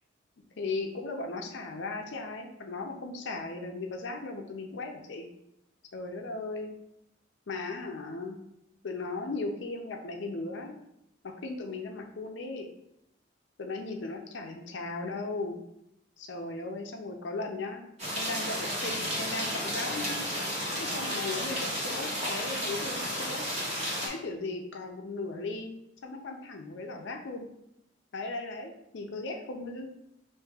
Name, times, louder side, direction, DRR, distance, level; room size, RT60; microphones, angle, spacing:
voice 1, 0.6-5.3 5.9-6.7 7.5-8.4 8.8-10.8 11.2-12.7 13.6-15.6 16.2-17.8 18.1-20.2 20.8-23.5 24.0-25.7 26.0-27.5 28.1-29.9, left 3 dB, 70° left, 3 dB, 0.5 m, -37 dB
sound 1, 18.0-24.1, equal, 35° right, 1.1 m, -32 dB
6.3 x 2.5 x 2.3 m, 0.81 s
head